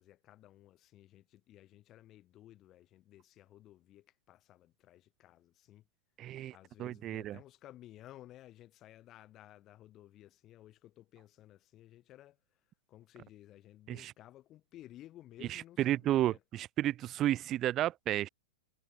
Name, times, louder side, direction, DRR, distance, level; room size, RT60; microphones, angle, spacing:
voice 1, 0.0-5.8 6.5-12.4 12.9-16.4, left 14 dB, 35° left, 5.1 m, -56 dB
voice 2, 6.2-7.4 13.9-14.1 15.5-18.3, right 13 dB, 35° right, 0.4 m, -32 dB
hypercardioid pair, 110°, 0 cm